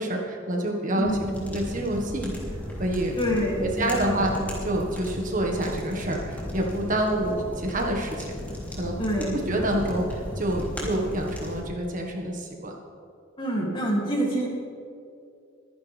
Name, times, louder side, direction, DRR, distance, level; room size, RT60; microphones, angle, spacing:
voice 1, 0.0-2.4 2.8-3.2 3.6-4.3 4.6-8.3 8.8-9.0 9.5-12.7, right 1 dB, 40° right, 1 dB, 1.7 m, -27 dB
voice 2, 0.9-1.4 3.2-4.5 9.0-9.4 13.4-14.5, equal, 25° left, -2 dB, 2.9 m, -27 dB
sound 1, 1.0-11.6, left 1 dB, 10° left, 3.4 m, -36 dB
23.5 x 10.5 x 3.5 m, 2.5 s
head